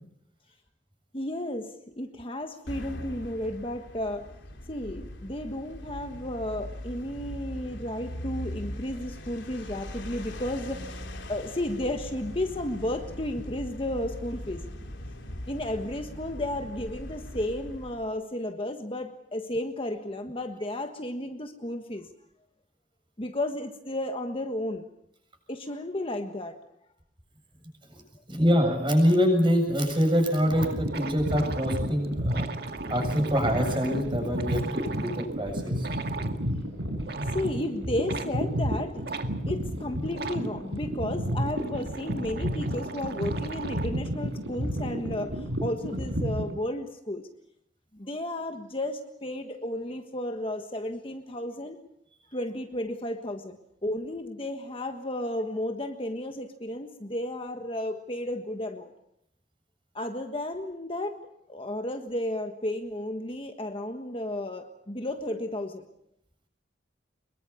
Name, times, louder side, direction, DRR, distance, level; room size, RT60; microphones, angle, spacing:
voice 1, 1.1-4.3 4.7-11.0 11.3-14.7 15.5-22.1 23.2-24.9 25.5-26.6 37.3-39.0 39.5-47.3 47.9-51.8 52.3-53.6 53.8-58.9 59.9-61.2 61.5-65.8, left 1 dB, 30° left, 6 dB, 1.5 m, -33 dB
Sound of cars, 2.7-18.2, left 1 dB, 75° left, 3.3 m, -40 dB
voice 2, 28.3-32.5 32.9-35.9, equal, 25° right, 4 dB, 7.3 m, -25 dB
sound 1, 30.4-46.5, equal, 75° right, 5.4 m, -32 dB
sound 2, 30.5-35.3 35.8-36.4 37.0-37.5 38.1-38.3 39.0-39.3 40.1-40.5 41.2-44.0, right 4 dB, 55° right, 2.0 m, -39 dB
24.5 x 22.5 x 7.0 m, 0.76 s
head